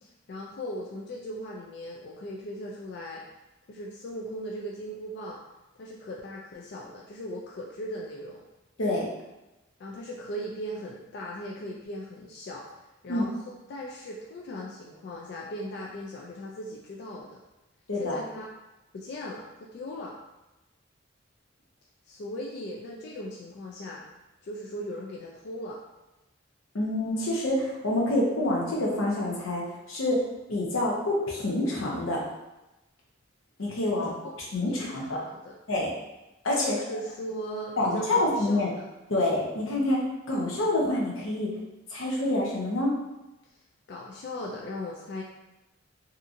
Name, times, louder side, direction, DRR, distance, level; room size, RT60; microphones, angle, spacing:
voice 1, 0.0-3.2 3.7-5.4 5.8-8.4 9.8-13.4 13.7-17.4 18.0-18.5 18.9-20.2 22.1-24.0 24.4-25.8 33.9-34.3 34.7-35.5 36.6-38.9 43.9-45.2, equal, 55° left, -2 dB, 0.3 m, -38 dB
voice 2, 17.9-18.2 26.7-29.6 29.9-30.2 30.5-32.2 33.6-34.1 34.5-35.2 35.7-35.9 36.4-36.8 37.8-38.7 39.1-40.0 40.3-41.5 41.9-42.9, left 1 dB, 85° left, -3 dB, 0.7 m, -27 dB
2.8 x 2.5 x 2.5 m, 1.0 s
head